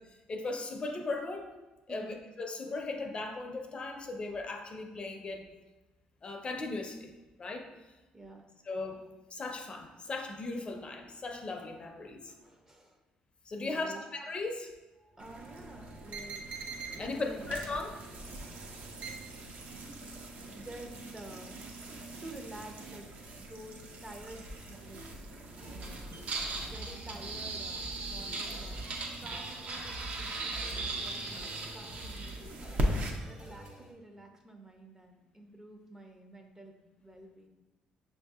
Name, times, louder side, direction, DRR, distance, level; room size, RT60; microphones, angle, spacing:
voice 1, 0.3-1.5 1.9-5.4 6.2-7.1 7.4-7.7 8.7-9.0 9.3-12.3 13.5-14.7 17.0-18.0, left 3 dB, 35° left, 3 dB, 0.4 m, -37 dB
voice 2, 1.9-2.2 8.1-8.4 12.0-13.0 13.6-14.0 15.0-16.6 16.9-17.5 17.8-18.1 20.4-21.9 22.2-25.2 25.7-28.9 29.2-32.5 33.2-37.5, right 1 dB, 15° right, 3 dB, 0.5 m, -50 dB
sound 1, 15.2-33.1, right 2 dB, 55° right, 0.6 m, -39 dB
sound 2, 25.6-33.9, right 1 dB, 35° right, 1.1 m, -46 dB
5.9 x 2.6 x 2.3 m, 1.1 s
cardioid pair, 85°, 3 cm